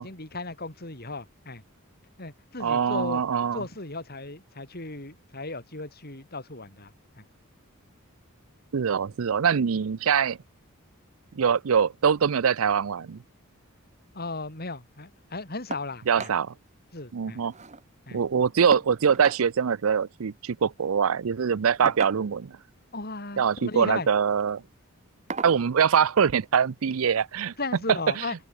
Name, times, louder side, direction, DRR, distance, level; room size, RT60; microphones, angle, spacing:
voice 1, 0.0-1.6 2.2-3.2 3.5-6.9 7.2-7.3 14.1-16.3 16.9-17.4 18.1-18.2 21.8-21.9 22.9-24.1 27.6-28.4, left 3 dB, 45° left, 5.2 m, -36 dB
voice 2, 2.6-3.6 8.7-10.4 11.3-13.2 16.1-16.5 17.1-17.5 18.1-22.6 23.4-24.6 25.4-27.5 28.2-28.3, right 7 dB, 75° right, 0.5 m, -23 dB
sound 1, 15.7-15.9 16.2-16.4 16.8-16.9 17.1-17.8 18.7-19.4 20.7-20.9 21.8-22.5 23.5-23.9 24.3-24.5 25.3-25.6 26.9-27.0 27.5-27.6, right 4 dB, 35° right, 1.4 m, -37 dB
open air
head